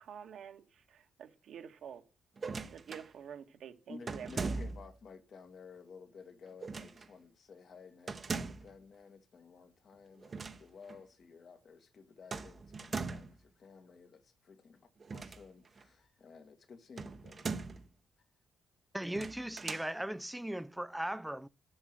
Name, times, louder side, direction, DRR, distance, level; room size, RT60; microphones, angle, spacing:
voice 1, 0.0-2.0 2.7-4.3, right 8 dB, 65° right, 1.7 m, -48 dB
sound 1, 2.4-3.1 4.1-5.0 6.6-7.1 8.1-8.8 10.2-10.6 10.9-11.0 12.3-13.4 15.0-15.8 17.0-17.9 19.0-19.9, right 4 dB, 40° right, 1.0 m, -40 dB
voice 2, 3.9-17.5, left 5 dB, 50° left, 1.9 m, -54 dB
voice 3, 18.9-21.5, right 1 dB, 5° right, 0.5 m, -38 dB
8.0 x 5.8 x 7.8 m
cardioid pair, 90°, 0 cm